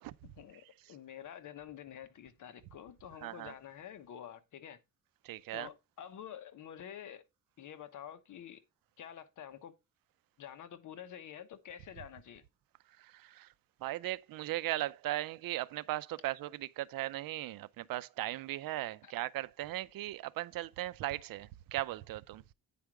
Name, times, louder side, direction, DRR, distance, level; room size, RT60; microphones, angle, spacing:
voice 1, 0.2-4.8 5.5-7.2 7.6-8.6 9.0-9.7 10.4-12.4 19.0-19.1, left 9 dB, 60° left, 1.1 m, -48 dB
voice 2, 3.2-3.5 5.2-5.7 13.0-13.5 13.8-22.4, right 15 dB, 85° right, 0.6 m, -38 dB
9.2 x 5.0 x 4.6 m
cardioid pair, 155°, 34 cm